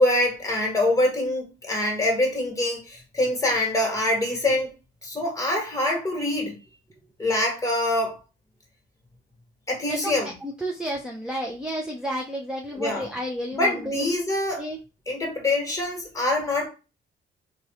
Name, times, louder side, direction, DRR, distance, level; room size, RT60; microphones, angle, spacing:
voice 1, 0.0-4.7 5.0-6.6 7.2-8.2 9.7-10.3 12.8-13.1 13.5-14.7 15.1-16.7, left 1 dB, 15° left, 1.7 m, -24 dB
voice 2, 9.9-14.1 14.6-14.8, equal, 5° right, 0.6 m, -31 dB
3.1 x 2.4 x 4.2 m
cardioid pair, 90°, 20 cm